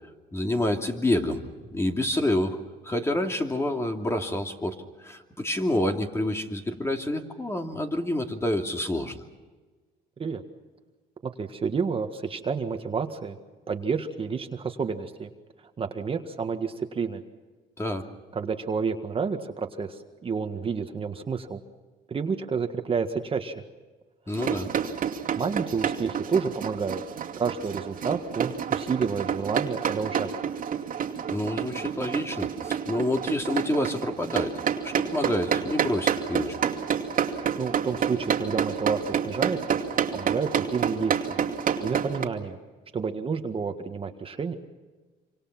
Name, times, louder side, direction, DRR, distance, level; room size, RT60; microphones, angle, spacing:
voice 1, 0.3-1.4 1.7-2.6 2.8-9.2 17.8-18.0 24.3-24.7 31.3-36.6, left 1 dB, 15° left, 3 dB, 2.7 m, -28 dB
voice 2, 11.2-13.4 13.7-15.3 15.8-17.2 18.3-21.6 22.1-23.6 25.4-27.0 27.4-30.3 37.6-39.8 40.1-41.4 41.8-42.6 42.9-44.5, right 5 dB, 30° right, 6 dB, 1.7 m, -30 dB
sound 1, 24.3-42.3, right 8 dB, 55° right, 2.4 m, -29 dB
27.0 x 26.0 x 6.0 m, 1.3 s
cardioid pair, 110°, 17 cm